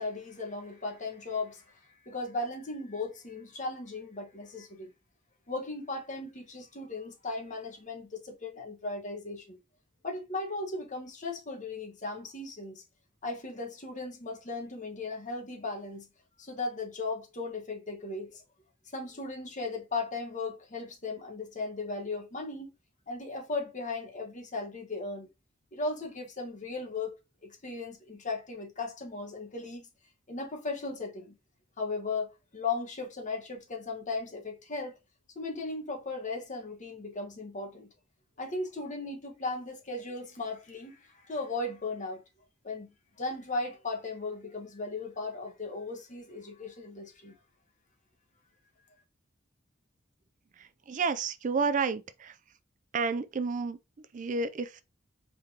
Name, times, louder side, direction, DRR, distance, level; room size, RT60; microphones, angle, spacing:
voice 1, 0.0-1.6 2.0-4.9 5.5-9.6 10.0-12.8 13.2-16.1 16.4-18.4 18.9-22.7 23.1-25.3 25.7-29.9 30.3-31.3 31.8-34.9 35.3-37.9 38.4-42.2 42.6-42.9 43.2-47.3, left 3 dB, 40° left, 1.3 m, -37 dB
voice 2, 50.6-52.4 52.9-54.8, right 4 dB, 40° right, 0.4 m, -31 dB
4.7 x 3.8 x 2.8 m
head